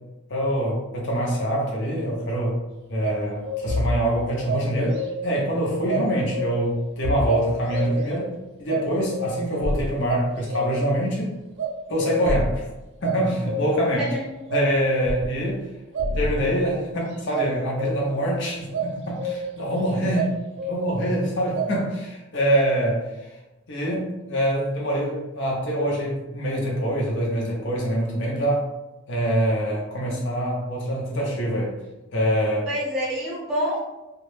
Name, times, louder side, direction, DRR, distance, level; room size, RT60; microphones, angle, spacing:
voice 1, 0.3-2.6 2.9-8.3 8.6-11.3 11.9-12.7 13.0-14.1 14.5-15.6 16.1-20.3 20.6-23.3 23.7-28.7 29.1-31.7 32.1-32.7, equal, 60° left, -3 dB, 0.7 m, -25 dB
sound 1, 3.0-3.9 4.5-5.4 5.9-6.8 7.3-8.2 8.7-9.6 10.1-11.0 11.6-12.5 13.0-14.1 14.5-15.4 15.9-16.9 17.3-18.2 18.7-19.7 20.1-21.1 21.5-21.7, right 2 dB, 55° right, 0.4 m, -30 dB
sound 2, 3.7-4.0 7.0-7.3 9.6-9.9 12.2-12.6 15.0-15.3 16.0-16.5, left 2 dB, 90° left, 0.3 m, -26 dB
voice 2, 14.0-14.3 20.0-20.1 32.7-33.8, equal, ahead, -7 dB, 0.5 m, -27 dB
2.2 x 2.0 x 3.1 m, 1.0 s
head